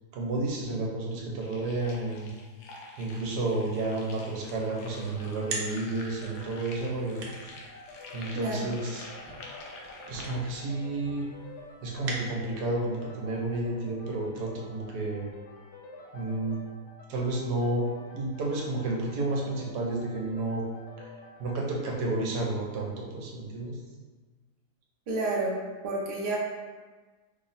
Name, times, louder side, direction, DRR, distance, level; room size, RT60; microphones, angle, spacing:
voice 1, 0.1-2.3 3.0-7.3 8.1-9.1 10.1-11.3 11.8-15.3 16.1-16.6 17.1-17.9 18.1-20.6 21.0-21.1 21.4-23.8, right 2 dB, 90° right, -2 dB, 1.2 m, -31 dB
sound 1, 1.4-10.5, left 2 dB, 85° left, 1.2 m, -47 dB
sound 2, 4.6-22.1, left 2 dB, 65° left, 0.7 m, -50 dB
sound 3, 5.2-12.8, right 3 dB, 70° right, 1.0 m, -43 dB
voice 2, 8.3-8.7 25.1-25.5 25.8-26.4, right 2 dB, 55° right, -3 dB, 0.6 m, -30 dB
3.3 x 2.0 x 4.0 m, 1.3 s
omnidirectional pair, 1.7 m